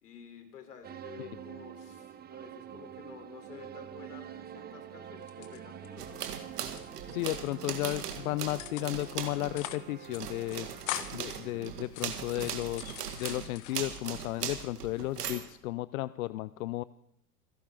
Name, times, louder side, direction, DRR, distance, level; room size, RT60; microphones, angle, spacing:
voice 1, 0.0-6.2, left 7 dB, 85° left, 5 dB, 3.8 m, -51 dB
sound 1, 0.8-11.9, right 9 dB, 20° right, 0.8 m, -46 dB
sound 2, 5.2-6.3 6.5-7.5 7.8-8.2 8.6-9.1 9.4-9.9 10.1-10.2 10.5-11.3 11.8-14.0 14.4-15.1, left 15 dB, 40° left, 1.2 m, -42 dB
sound 3, 6.0-9.7 10.0-15.5, right 8 dB, 85° right, 2.3 m, -39 dB
voice 2, 7.1-10.7 11.1-16.8, left 18 dB, 65° left, 17 dB, 0.6 m, -34 dB
28.0 x 11.5 x 3.8 m, 0.71 s
hypercardioid pair, 105°, 46 cm